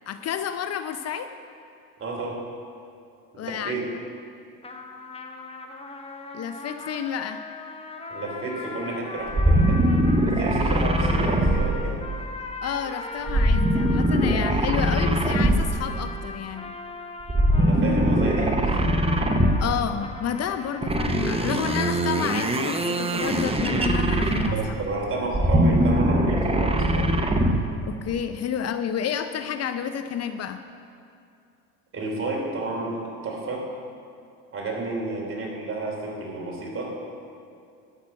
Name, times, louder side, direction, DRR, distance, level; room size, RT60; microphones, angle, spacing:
voice 1, 0.1-1.3 3.4-3.8 6.3-7.4 12.6-16.7 19.6-24.6 27.8-30.6, left 8 dB, 45° left, 9 dB, 0.6 m, -30 dB
voice 2, 2.0-2.4 3.3-3.8 8.1-9.8 10.2-12.0 17.5-18.9 24.5-27.2 31.9-33.6 34.5-36.9, right 2 dB, 35° right, -1 dB, 3.2 m, -31 dB
sound 1, 4.6-21.8, left 3 dB, 15° left, 1.0 m, -39 dB
sound 2, 9.3-12.3 13.3-16.0 17.2-19.9 20.8-24.8 25.2-27.7, right 1 dB, 15° right, 0.9 m, -22 dB
12.0 x 6.1 x 7.5 m, 2.5 s
supercardioid pair, 85°, 36 cm